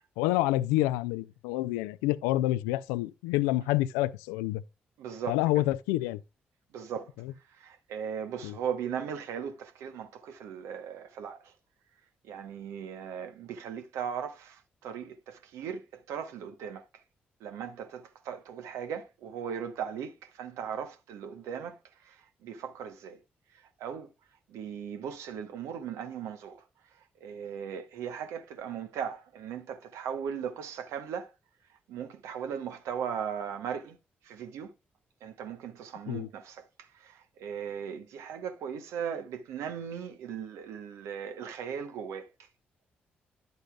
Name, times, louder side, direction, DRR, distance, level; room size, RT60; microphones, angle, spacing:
voice 1, 0.2-4.6 5.3-6.2 7.2-7.3 8.4-8.6 36.1-36.3, left 16 dB, 80° left, 0.4 m, -28 dB
voice 2, 5.0-5.6 6.7-7.1 7.5-11.5 12.2-16.9 17.4-23.2 23.8-24.1 24.5-26.6 26.9-31.3 31.9-34.0 34.2-34.7 35.2-42.5, right 8 dB, 75° right, 1.0 m, -38 dB
10.5 x 7.9 x 2.3 m
hypercardioid pair, 40°, 5 cm